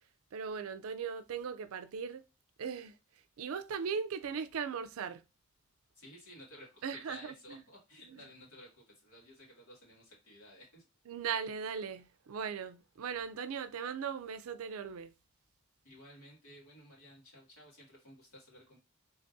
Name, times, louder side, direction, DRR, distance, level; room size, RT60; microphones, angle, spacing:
voice 1, 0.3-2.2 2.6-2.9 3.4-5.2 6.8-7.6 8.1-8.2 11.1-15.1, right 6 dB, 80° right, 0.4 m, -38 dB
voice 2, 5.9-10.9 15.8-18.8, left 1 dB, 80° left, 2.2 m, -55 dB
3.5 x 3.4 x 2.6 m
head